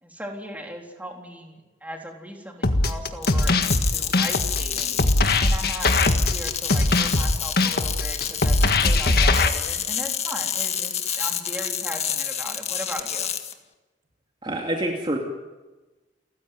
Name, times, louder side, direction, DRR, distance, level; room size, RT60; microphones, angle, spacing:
voice 1, 0.0-5.0 5.4-6.0 6.3-13.3, equal, 10° right, 1 dB, 3.6 m, -38 dB
sound 1, 2.6-9.5, left 2 dB, 55° left, 1.8 m, -21 dB
sound 2, 3.2-13.5, left 9 dB, 35° left, 1.8 m, -29 dB
voice 2, 14.4-15.2, right 1 dB, 25° right, 1 dB, 2.6 m, -26 dB
30.0 x 15.0 x 9.4 m, 1.2 s
head